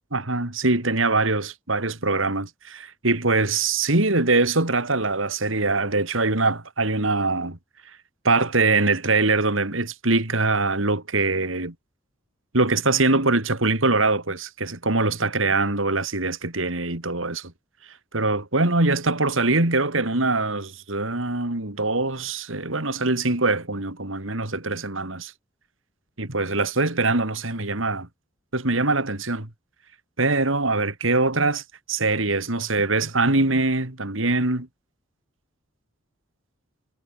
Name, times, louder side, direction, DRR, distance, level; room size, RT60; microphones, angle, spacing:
voice 1, 0.1-7.6 8.2-11.7 12.5-17.5 18.1-25.3 26.2-28.1 28.5-29.5 30.2-31.6 31.9-34.7, right 3 dB, 70° right, 3.2 m, -23 dB
head